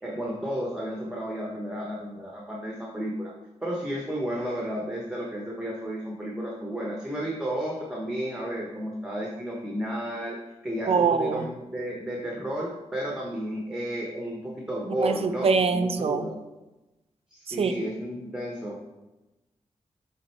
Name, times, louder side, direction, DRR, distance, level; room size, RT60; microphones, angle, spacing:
voice 1, 0.0-3.3 3.6-10.4 10.6-16.4 17.3-18.8, equal, 5° right, -2 dB, 0.9 m, -32 dB
voice 2, 10.9-11.5 14.9-16.3 17.5-17.7, right 5 dB, 55° right, 9 dB, 0.5 m, -24 dB
7.5 x 3.4 x 4.4 m, 1.0 s
wide cardioid pair, 120°, 12 cm